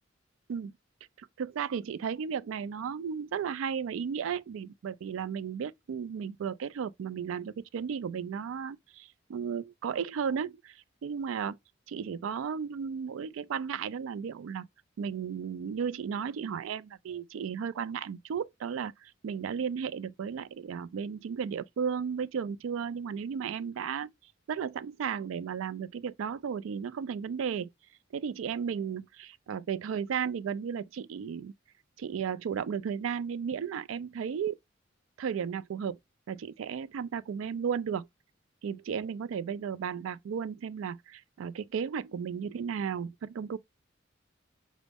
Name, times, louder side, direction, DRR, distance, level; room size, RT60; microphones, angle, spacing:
voice 1, 1.2-11.6 11.9-14.7 15.0-24.1 24.5-27.7 28.1-31.5 32.0-34.6 35.2-36.0 36.3-38.1 38.6-43.6, right 7 dB, 80° right, 0.3 m, -34 dB
5.0 x 2.1 x 3.4 m
head